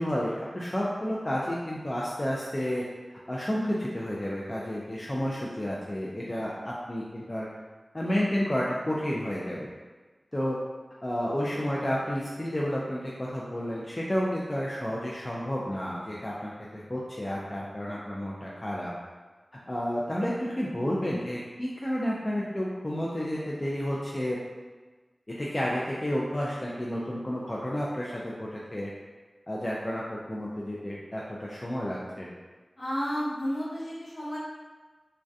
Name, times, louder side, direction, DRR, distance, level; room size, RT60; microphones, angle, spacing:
voice 1, 0.0-2.8 3.3-7.5 7.9-9.7 10.3-10.6 11.0-18.9 19.7-24.4 25.3-28.9 29.5-32.3, equal, 30° left, -5 dB, 0.3 m, -31 dB
voice 2, 32.8-34.4, equal, 60° left, -9 dB, 0.8 m, -32 dB
2.3 x 2.1 x 2.6 m, 1.3 s
wide cardioid pair, 60°, 0 cm